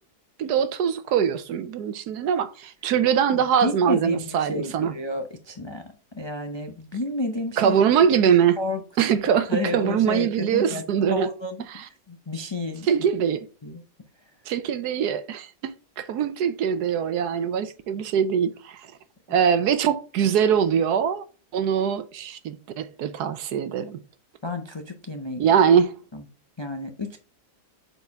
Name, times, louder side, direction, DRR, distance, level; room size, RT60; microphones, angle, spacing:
voice 1, 0.4-4.9 7.6-8.6 9.0-11.3 11.7-11.9 12.8-13.5 14.5-18.8 19.3-21.2 21.5-24.0 25.4-25.9, right 8 dB, 80° right, 1.3 m, -22 dB
voice 2, 3.6-5.8 6.1-7.8 8.2-8.3 8.6-8.8 9.2-10.8 11.1-12.9 13.6-13.8 24.4-25.4 26.1-26.2 26.6-27.2, left 2 dB, 45° left, 0.3 m, -31 dB
7.1 x 4.3 x 3.4 m
omnidirectional pair, 1.7 m